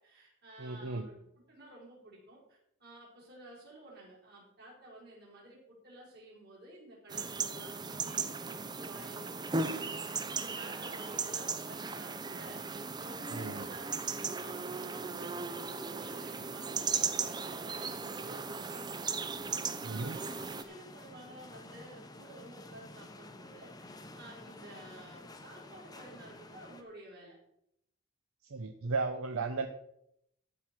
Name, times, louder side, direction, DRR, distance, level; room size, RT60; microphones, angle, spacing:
voice 1, 0.0-19.1 19.4-27.4, right 1 dB, 50° right, -3 dB, 4.9 m, -52 dB
voice 2, 0.6-1.1 13.3-13.6 19.8-20.2 28.4-29.7, right 3 dB, 75° right, 7 dB, 0.7 m, -35 dB
sound 1, 7.1-20.6, right 4 dB, 20° right, 0.5 m, -37 dB
sound 2, 20.0-26.8, left 2 dB, 20° left, 0.8 m, -51 dB
14.5 x 4.9 x 6.0 m, 0.77 s
head